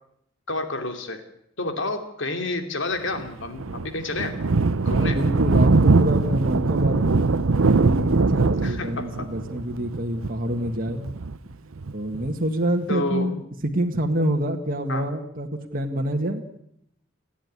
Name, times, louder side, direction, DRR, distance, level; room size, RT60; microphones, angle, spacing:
voice 1, 0.5-1.2 1.6-4.4 4.8-5.2 8.6-9.2 12.9-13.3 14.9-15.1, left 2 dB, 60° left, 7 dB, 2.8 m, -29 dB
Thunder, 3.1-12.3, right 3 dB, 75° right, 0.7 m, -22 dB
voice 2, 4.8-11.2 11.9-16.4, right 1 dB, 40° right, 3 dB, 1.8 m, -27 dB
29.5 x 10.5 x 9.7 m, 0.75 s
head